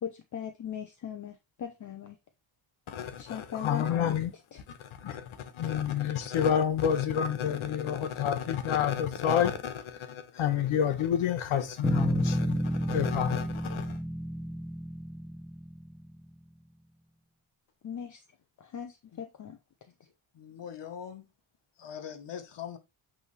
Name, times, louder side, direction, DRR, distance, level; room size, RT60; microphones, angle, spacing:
voice 1, 0.0-2.2 3.2-4.1 17.8-18.2 18.6-19.6, left 8 dB, 40° left, 0.6 m, -39 dB
voice 2, 2.9-4.3 4.8-5.2 5.5-12.6 12.9-14.0, left 9 dB, 80° left, 1.3 m, -29 dB
Bass guitar, 11.8-16.2, equal, 5° right, 1.2 m, -31 dB
voice 3, 20.3-21.3 21.8-22.8, left 8 dB, 60° left, 1.2 m, -41 dB
8.4 x 3.4 x 3.2 m
wide cardioid pair, 145°, 49 cm